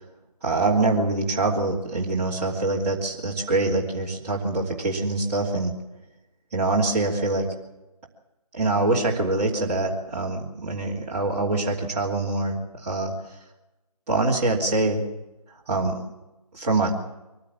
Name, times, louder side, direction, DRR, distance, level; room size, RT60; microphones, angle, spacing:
voice 1, 0.4-5.7 6.5-7.5 8.5-13.1 14.1-15.0 15.7-16.0 16.5-16.9, right 2 dB, 20° right, -6 dB, 2.9 m, -24 dB
24.0 x 15.5 x 7.3 m, 1.0 s
figure-of-eight pair, 155°, 20 cm